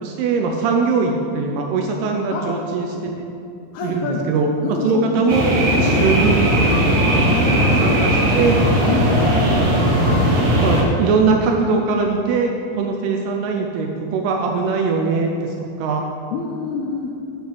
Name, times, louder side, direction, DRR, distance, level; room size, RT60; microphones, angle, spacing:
voice 1, 0.0-3.2 3.8-4.5 4.8-5.5 5.8-6.4 7.8-8.6 10.6-16.0, right 4 dB, 80° right, 2 dB, 2.4 m, -21 dB
voice 2, 2.3-2.6 3.7-4.3 4.6-5.5 5.8-6.1 7.3-7.8 8.9-9.3 16.3-17.1, left 5 dB, 80° left, 0 dB, 2.3 m, -27 dB
sound 1, 5.3-10.8, equal, 65° right, 1.6 m, -17 dB
8.3 x 5.5 x 6.1 m, 2.6 s
omnidirectional pair, 5.1 m